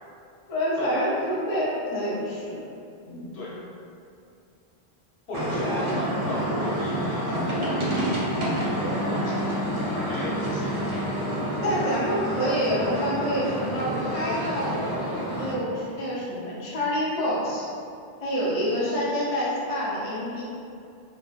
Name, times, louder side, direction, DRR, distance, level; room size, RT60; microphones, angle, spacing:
voice 1, 0.5-2.6 3.1-3.3 11.6-14.9 15.4-17.7 18.2-20.4, equal, 45° left, -7 dB, 0.6 m, -27 dB
voice 2, 5.3-8.1 8.4-10.9, left 1 dB, 85° left, -7 dB, 1.0 m, -35 dB
sound 1, 5.3-15.5, right 1 dB, 50° right, 0.4 m, -28 dB
3.2 x 2.1 x 2.3 m, 2.4 s
omnidirectional pair, 1.0 m